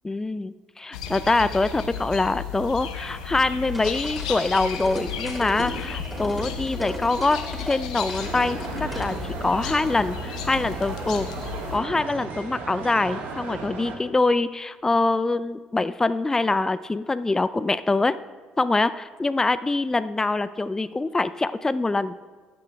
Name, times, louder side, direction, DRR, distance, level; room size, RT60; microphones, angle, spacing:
voice 1, 0.0-7.4 7.6-11.3 11.7-18.2 18.6-22.1, left 3 dB, 15° left, 15 dB, 0.3 m, -24 dB
sound 1, 0.9-11.8, left 6 dB, 75° left, 0.8 m, -34 dB
sound 2, 3.6-9.1, equal, 5° right, 2.8 m, -36 dB
sound 3, 8.2-14.0, right 4 dB, 55° right, 1.5 m, -35 dB
15.0 x 11.5 x 2.3 m, 1.4 s
figure-of-eight pair, 50°, 4 cm